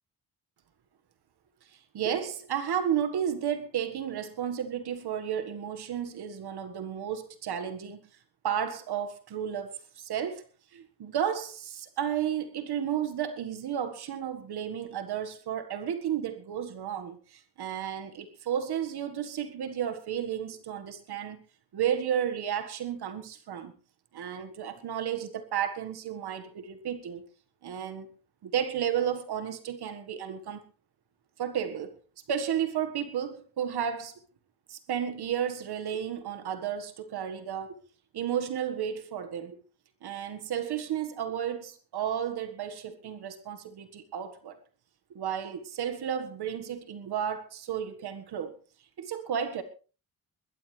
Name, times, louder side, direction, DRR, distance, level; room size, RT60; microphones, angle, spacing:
voice 1, 1.9-8.0 8.4-10.4 10.7-21.4 21.7-23.7 24.1-27.2 27.6-28.1 28.4-30.6 31.4-31.9 32.3-34.2 34.7-37.8 38.1-39.6 40.0-44.6 45.1-48.6 49.0-49.6, right 9 dB, 80° right, 1.7 m, -32 dB
21.0 x 12.5 x 3.3 m
cardioid pair, 90°, 38 cm